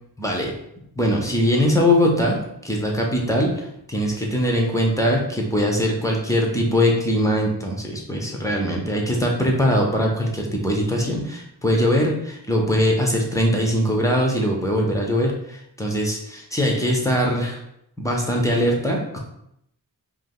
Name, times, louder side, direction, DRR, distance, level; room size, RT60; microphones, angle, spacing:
voice 1, 0.2-0.6 1.0-17.6 18.0-19.2, equal, 5° left, 0 dB, 0.9 m, -21 dB
4.9 x 2.1 x 3.8 m, 0.78 s
wide cardioid pair, 55°, 43 cm